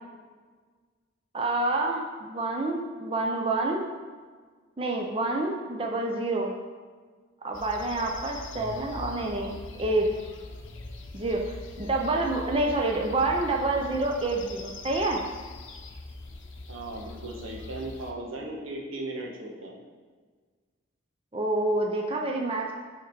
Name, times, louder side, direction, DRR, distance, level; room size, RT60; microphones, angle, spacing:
voice 1, 1.3-3.9 4.8-6.5 7.4-10.1 11.1-11.4 11.8-15.2 21.3-22.8, right 2 dB, 25° right, 0 dB, 0.6 m, -28 dB
sound 1, 7.5-18.1, left 2 dB, 70° left, 0.7 m, -42 dB
voice 2, 16.7-19.8, right 2 dB, 90° right, -1 dB, 1.2 m, -37 dB
8.7 x 3.6 x 4.6 m, 1.5 s
head